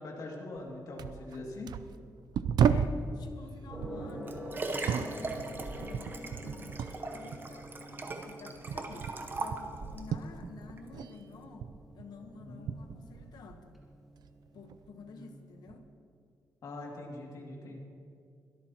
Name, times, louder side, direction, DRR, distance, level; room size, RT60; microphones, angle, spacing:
voice 1, 0.0-1.7 12.4-12.7 14.9-15.3 16.6-17.8, left 2 dB, 60° left, -1 dB, 2.4 m, -43 dB
sound 1, 0.5-0.7 1.0-3.1 3.7-7.0 7.3-11.1 11.4-13.7 14.2-14.9 15.7-15.9, right 7 dB, 80° right, 0.4 m, -35 dB
voice 2, 2.6-4.4 4.8-13.8 14.5-15.9, left 4 dB, 80° left, 6 dB, 1.1 m, -50 dB
Gong, 3.7-15.7, equal, ahead, 1.7 m, -48 dB
Liquid, 3.9-10.1 10.8-10.9, right 3 dB, 30° right, 0.9 m, -40 dB
22.0 x 13.0 x 2.9 m, 2.4 s
wide cardioid pair, 175°, 7 cm